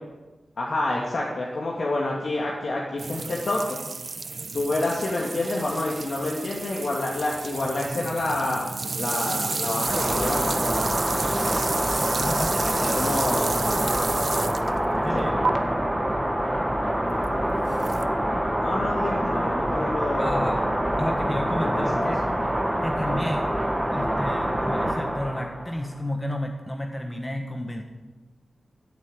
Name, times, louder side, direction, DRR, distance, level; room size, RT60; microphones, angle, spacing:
voice 1, 0.6-3.8 4.5-8.6 9.0-10.7 13.0-13.5 15.1-15.2 18.6-20.5 21.7-22.1, left 2 dB, 60° left, -3 dB, 2.5 m, -28 dB
sound 1, 3.0-14.8 15.4-15.5 17.8-18.1, right 4 dB, 45° right, 0.7 m, -31 dB
sound 2, 9.9-25.9, equal, 5° right, 1.7 m, -26 dB
voice 2, 11.9-13.2 13.8-13.9 14.7-15.5 20.2-20.6 21.0-22.2 22.8-23.5 23.9-27.8, left 1 dB, 10° left, 3 dB, 1.3 m, -32 dB
15.0 x 8.8 x 8.9 m, 1.2 s
wide cardioid pair, 125°, 0 cm